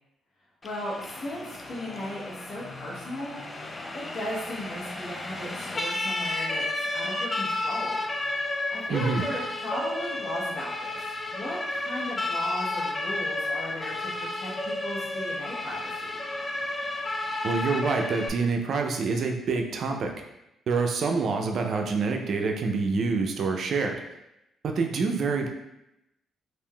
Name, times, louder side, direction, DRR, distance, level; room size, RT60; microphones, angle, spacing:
voice 1, 0.6-3.4 3.9-8.0 8.7-11.0 11.3-16.2, left 1 dB, 75° left, -4 dB, 1.0 m, -36 dB
Siren, 0.6-18.3, left 2 dB, 25° left, 0.3 m, -32 dB
voice 2, 8.9-9.2 17.4-20.1 20.7-24.0 24.6-25.5, right 4 dB, 60° right, 3 dB, 0.4 m, -26 dB
3.5 x 2.5 x 2.2 m, 0.88 s
cardioid pair, 90°, 0 cm